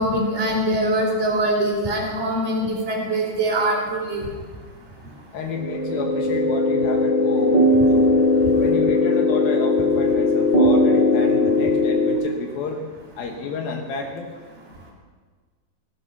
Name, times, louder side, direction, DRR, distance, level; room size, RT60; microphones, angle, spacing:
voice 1, 0.0-4.2, right 1 dB, 15° right, -3 dB, 3.5 m, -23 dB
voice 2, 5.3-8.1 8.6-12.8 13.2-14.3, left 4 dB, 70° left, 2 dB, 2.8 m, -31 dB
sound 1, 5.5-12.1, left 2 dB, 15° left, 1.7 m, -19 dB
19.0 x 9.7 x 6.0 m, 1.5 s
omnidirectional pair, 4.8 m